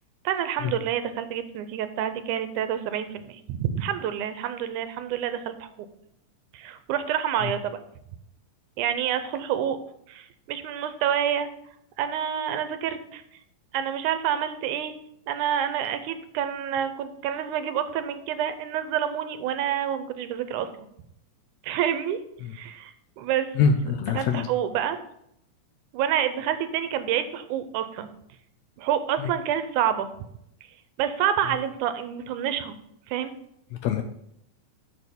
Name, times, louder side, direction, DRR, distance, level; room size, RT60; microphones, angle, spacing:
voice 1, 0.3-5.7 6.5-7.8 8.8-9.8 10.1-11.5 12.0-13.2 13.7-14.9 15.3-20.7 21.6-22.2 22.5-23.5 24.2-25.0 25.9-28.1 28.8-30.1 31.0-32.8 33.1-33.3, right 9 dB, 80° right, 10 dB, 2.1 m, -28 dB
voice 2, 23.6-24.5 29.2-29.3 33.7-34.0, left 6 dB, 80° left, 7 dB, 1.7 m, -24 dB
7.0 x 6.2 x 5.2 m, 0.73 s
omnidirectional pair, 3.6 m